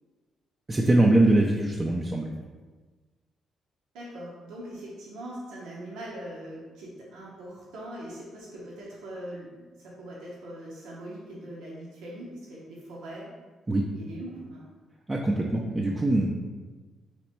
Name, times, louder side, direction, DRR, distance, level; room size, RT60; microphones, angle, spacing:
voice 1, 0.7-2.3 13.7-13.8 15.1-16.3, right 1 dB, 20° right, -1 dB, 0.4 m, -22 dB
voice 2, 3.9-9.5 9.8-13.3 13.9-14.6, right 1 dB, 90° right, -5 dB, 0.9 m, -41 dB
3.3 x 3.1 x 4.4 m, 1.3 s
cardioid pair, 90°, 0 cm